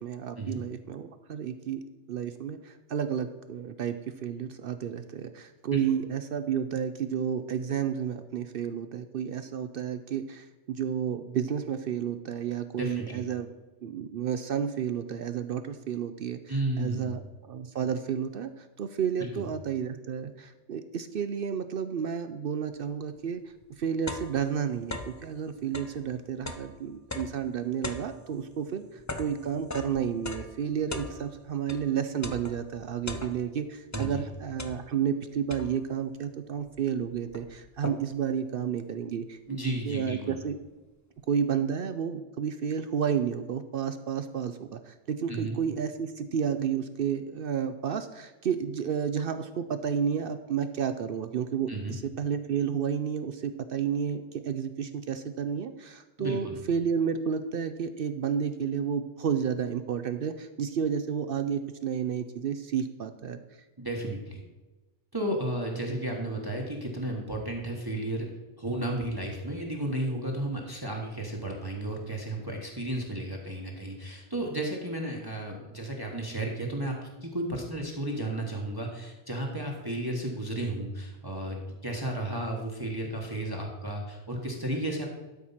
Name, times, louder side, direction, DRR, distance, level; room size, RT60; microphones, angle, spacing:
voice 1, 0.0-1.8 2.1-13.5 13.8-16.4 16.8-23.4 23.8-40.6 41.3-63.4 65.9-66.0, right 8 dB, 60° right, 10 dB, 0.7 m, -31 dB
voice 2, 12.7-13.2 16.5-17.2 19.2-19.5 33.9-34.2 39.5-40.4 45.3-45.5 51.7-52.0 56.2-56.6 63.8-64.4 65.1-68.3 68.6-85.1, right 1 dB, 20° right, 0 dB, 1.2 m, -33 dB
sound 1, 23.2-23.3 23.6-25.3 25.6-31.9 32.2-33.6 33.9-35.1 35.5-36.0 36.7-36.8 37.0-38.3, left 2 dB, 20° left, 0.5 m, -40 dB
12.5 x 4.7 x 5.7 m, 1.1 s
omnidirectional pair, 1.2 m